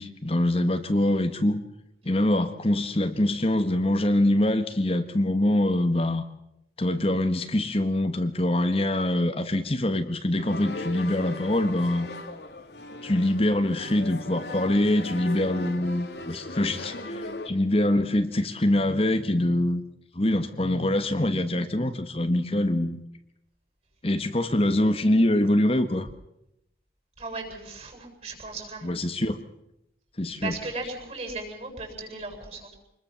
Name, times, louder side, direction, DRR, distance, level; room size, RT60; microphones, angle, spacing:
voice 1, 0.0-1.6 2.0-6.2 6.8-12.1 13.0-19.8 20.1-23.0 24.0-26.1 28.8-29.4 30.2-30.5, left 1 dB, 35° left, 7 dB, 1.4 m, -24 dB
sound 1, 10.4-17.5, left 2 dB, 75° left, 2.4 m, -38 dB
voice 2, 27.2-29.0 30.4-32.8, right 3 dB, 40° right, 4 dB, 7.6 m, -36 dB
26.0 x 21.0 x 7.0 m, 0.81 s
head